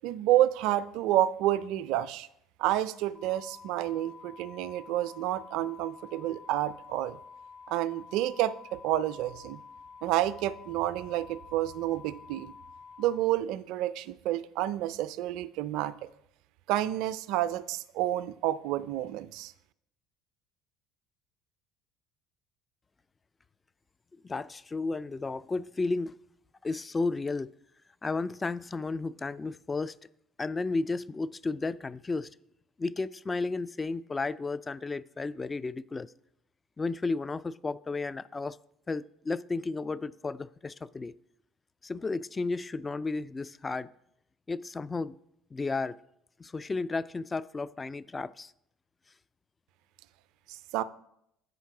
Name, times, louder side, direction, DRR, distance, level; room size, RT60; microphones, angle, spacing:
voice 1, 0.0-2.3 2.6-7.2 7.7-9.6 10.0-12.5 13.0-15.9 16.7-19.5 50.5-50.8, right 13 dB, 65° right, 0.4 m, -29 dB
sound 1, 3.1-13.2, left 5 dB, 75° left, 2.0 m, -50 dB
voice 2, 24.2-26.2 26.6-27.5 28.0-30.0 30.4-32.4 32.8-36.1 36.8-38.6 38.9-41.1 41.8-43.9 44.5-45.2 45.5-46.0 46.4-48.5, left 3 dB, 20° left, 0.3 m, -33 dB
8.1 x 5.7 x 4.8 m
hypercardioid pair, 65°, 0 cm